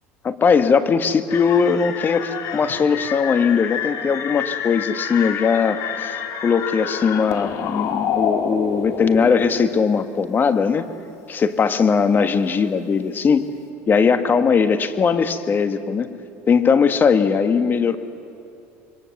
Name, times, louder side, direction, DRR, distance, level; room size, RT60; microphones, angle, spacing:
voice 1, 0.2-6.2 6.4-10.8 11.3-13.5 13.9-16.1 16.5-18.0, left 6 dB, 30° left, 9 dB, 1.4 m, -19 dB
sound 1, 1.3-9.6, left 8 dB, 60° left, 2.3 m, -28 dB
26.0 x 23.0 x 7.2 m, 2.6 s
supercardioid pair, 105°, 6 cm